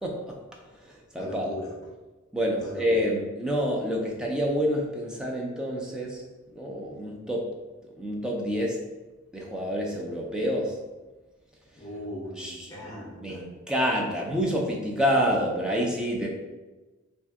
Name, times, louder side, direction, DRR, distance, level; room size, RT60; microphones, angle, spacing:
voice 1, 0.0-0.3 0.8-1.5 2.3-6.2 6.6-7.5 8.0-8.8 9.3-10.8 12.4-16.3, equal, 5° right, -2 dB, 0.4 m, -28 dB
voice 2, 1.1-1.9 2.6-2.9 11.8-13.4, left 1 dB, 20° left, -5 dB, 0.7 m, -39 dB
2.6 x 2.2 x 3.4 m, 1.2 s
head